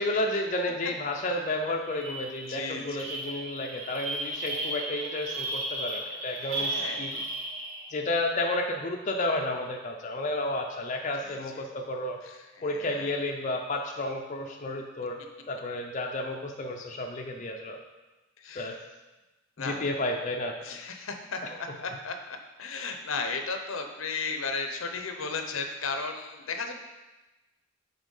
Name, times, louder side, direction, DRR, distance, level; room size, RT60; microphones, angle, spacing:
voice 1, 0.0-7.2 7.9-12.2 12.6-15.2 15.5-17.8 18.6-18.8 19.6-20.6 21.4-21.6, left 1 dB, 35° left, 1 dB, 0.5 m, -31 dB
sound 1, 1.2-1.4 1.7-8.1, right 2 dB, 75° right, 1.2 m, -35 dB
voice 2, 2.5-3.1 6.4-7.1 11.2-11.4 12.2-13.1 18.4-18.7 19.6-19.9 20.6-22.2 22.6-26.7, left 4 dB, 75° left, 5 dB, 0.7 m, -35 dB
6.3 x 4.3 x 5.4 m, 1.1 s
head